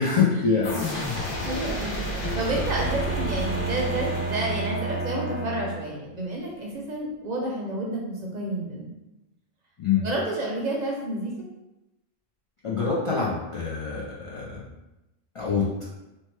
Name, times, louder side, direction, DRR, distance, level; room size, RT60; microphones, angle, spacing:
voice 1, 0.0-0.9 9.8-10.0 12.6-14.6 15.3-15.7, left 5 dB, 45° left, -7 dB, 0.4 m, -25 dB
sound 1, 0.6-5.3, equal, 60° left, 0.8 m, -32 dB
voice 2, 1.0-2.0 2.3-8.9 10.0-11.3, right 1 dB, 55° right, -2 dB, 0.6 m, -30 dB
Bowed string instrument, 2.2-6.2, right 3 dB, 90° left, 1.3 m, -31 dB
3.0 x 2.2 x 3.1 m, 0.97 s
omnidirectional pair, 1.0 m